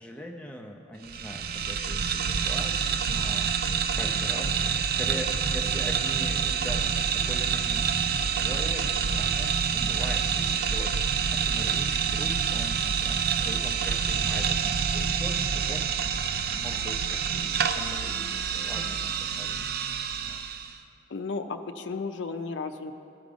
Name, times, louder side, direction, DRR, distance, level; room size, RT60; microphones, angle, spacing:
voice 1, 0.0-3.5 3.9-15.8 16.5-19.8 20.2-20.4, equal, 5° left, 1 dB, 0.6 m, -41 dB
sound 1, 1.0-20.7, right 6 dB, 50° right, 0.4 m, -27 dB
voice 2, 21.1-22.9, left 4 dB, 65° left, 6 dB, 0.5 m, -34 dB
15.5 x 5.2 x 5.1 m, 2.7 s
head